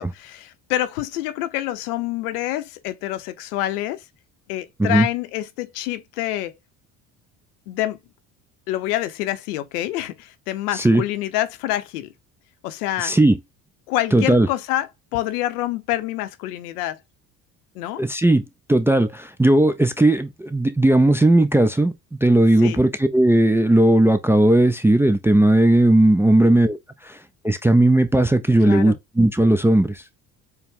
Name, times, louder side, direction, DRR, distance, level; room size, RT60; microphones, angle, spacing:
voice 1, 0.0-4.0 4.5-6.5 7.7-8.0 8.7-12.1 12.6-13.1 13.9-17.0 17.7-18.0 22.6-22.8 28.6-29.0, left 14 dB, 85° left, 0.7 m, -27 dB
voice 2, 13.0-13.4 14.1-14.5 18.0-21.9 22.2-26.8 27.0-27.2 27.4-30.0, right 1 dB, 5° right, 0.3 m, -17 dB
4.5 x 2.1 x 3.5 m
hypercardioid pair, 65°, 45 cm